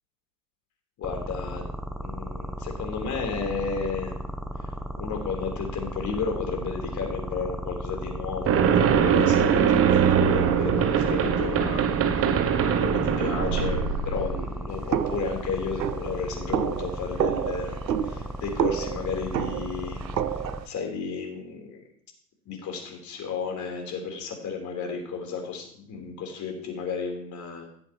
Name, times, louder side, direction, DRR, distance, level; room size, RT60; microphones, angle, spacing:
voice 1, 1.0-1.7 2.0-4.1 5.0-11.9 12.6-17.8 18.1-20.0 20.7-21.8 22.5-27.7, left 5 dB, 35° left, 2 dB, 3.9 m, -33 dB
sound 1, 1.0-20.6, equal, ahead, 0.8 m, -35 dB
sound 2, 8.5-14.5, right 8 dB, 30° right, 1.0 m, -22 dB
sound 3, 14.9-20.7, right 10 dB, 85° right, 0.7 m, -29 dB
17.0 x 7.7 x 3.1 m, 0.65 s
hypercardioid pair, 95°, 50 cm